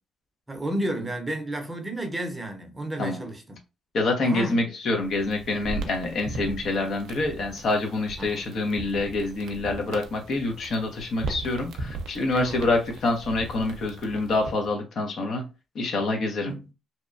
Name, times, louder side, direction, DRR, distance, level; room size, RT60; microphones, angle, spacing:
voice 1, 0.5-3.6 4.2-4.6 8.2-8.5 12.3-12.7 16.5-16.6, right 1 dB, 20° right, 0.6 m, -32 dB
voice 2, 3.9-15.4 15.7-16.5, left 2 dB, 60° left, 0.7 m, -26 dB
sound 1, 4.9-14.7, right 2 dB, 80° right, 0.5 m, -38 dB
2.8 x 2.1 x 2.4 m
cardioid pair, 90°, 0 cm